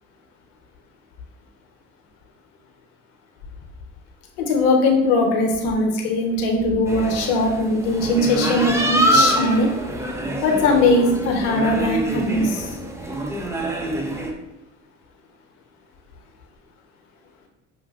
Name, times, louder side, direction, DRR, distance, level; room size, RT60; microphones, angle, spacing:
voice 1, 4.4-9.7 10.4-12.7, left 2 dB, 70° left, 1 dB, 0.9 m, -20 dB
sound 1, 6.9-14.3, right 1 dB, 5° right, 0.5 m, -25 dB
5.7 x 2.6 x 2.4 m, 0.95 s
hypercardioid pair, 55°, 39 cm